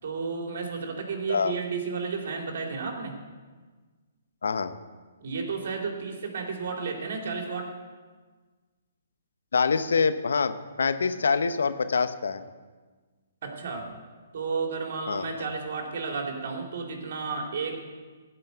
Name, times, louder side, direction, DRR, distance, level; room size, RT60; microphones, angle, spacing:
voice 1, 0.0-3.1 5.2-7.7 13.4-13.9 14.3-17.8, right 4 dB, 55° right, 2 dB, 2.8 m, -32 dB
voice 2, 4.4-4.7 9.5-12.4 15.1-15.2, left 5 dB, 70° left, 11 dB, 0.8 m, -25 dB
15.5 x 5.6 x 8.1 m, 1.4 s
figure-of-eight pair, 130°, 0 cm